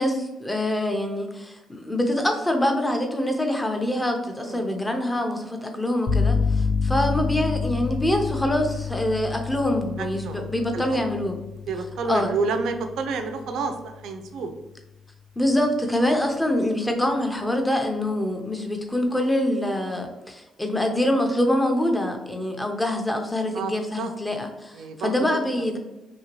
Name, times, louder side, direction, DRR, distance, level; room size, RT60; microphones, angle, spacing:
voice 1, 0.0-11.4 12.1-12.3 15.4-25.8, left 1 dB, 10° left, 4 dB, 0.6 m, -25 dB
sound 1, 6.1-13.8, left 5 dB, 50° left, 0.5 m, -28 dB
voice 2, 10.0-11.0 11.7-14.5 23.5-24.1 24.7-25.4, right 4 dB, 80° right, 6 dB, 0.4 m, -30 dB
3.0 x 2.7 x 2.9 m, 1.0 s
cardioid pair, 90°, 0 cm